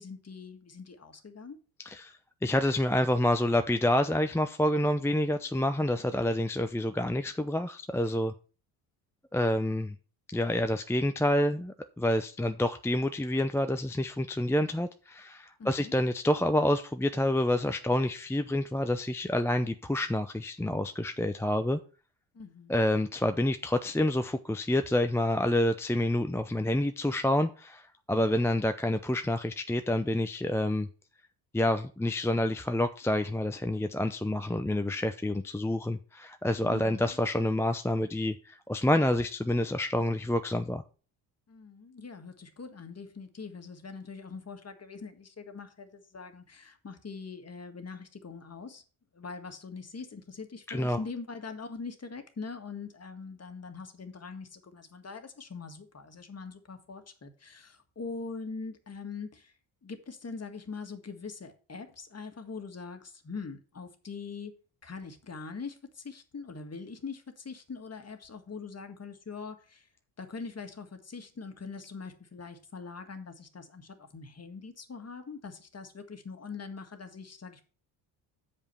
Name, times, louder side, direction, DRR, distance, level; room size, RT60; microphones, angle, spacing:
voice 1, 0.0-1.6 15.6-15.9 22.3-22.8 36.7-37.2 41.5-48.8 49.1-59.5 59.8-64.5 64.8-69.9 70.2-77.6, left 4 dB, 30° left, 1.8 m, -43 dB
voice 2, 1.8-8.3 9.3-9.9 10.3-21.8 22.7-30.9 31.5-40.8 50.7-51.0, left 1 dB, 5° left, 0.6 m, -28 dB
7.2 x 5.1 x 6.9 m
supercardioid pair, 70°, 50 cm